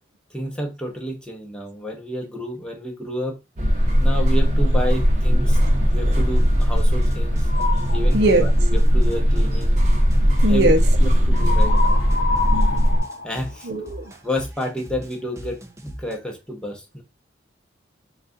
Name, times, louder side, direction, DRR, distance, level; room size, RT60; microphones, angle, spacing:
voice 1, 0.3-3.4 4.0-7.5 7.9-9.8 10.4-10.7 11.0-12.0 13.2-13.7 14.2-17.0, equal, 5° left, 0.8 m, -30 dB
sound 1, 3.6-13.0, equal, 40° right, 0.9 m, -18 dB
sound 2, 6.1-16.2, equal, 15° right, 0.5 m, -39 dB
sound 3, 7.5-8.0 11.3-14.1, left 4 dB, 55° left, 0.4 m, -27 dB
voice 2, 8.1-8.5 10.4-10.8 11.6-11.8 12.5-12.9 13.6-14.1, right 1 dB, 60° right, 0.5 m, -21 dB
4.0 x 2.3 x 3.7 m
head